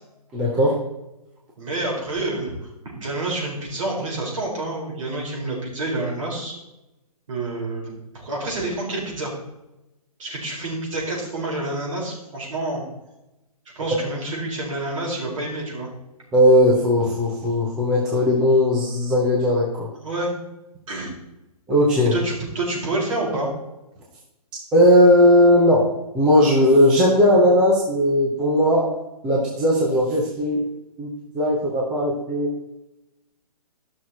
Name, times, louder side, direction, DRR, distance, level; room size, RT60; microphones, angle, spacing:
voice 1, 0.3-0.8 16.3-19.9 21.7-22.1 24.7-25.9 26.1-28.9 29.2-30.6 31.0-31.1 31.3-32.5, left 1 dB, 5° right, -5 dB, 0.4 m, -17 dB
voice 2, 1.6-6.5 7.3-9.3 10.2-12.8 13.7-15.9 20.0-20.3 20.9-21.1 22.1-23.5, right 2 dB, 50° right, -3 dB, 4.2 m, -28 dB
13.0 x 6.1 x 4.2 m, 0.95 s
hypercardioid pair, 170°, 20 cm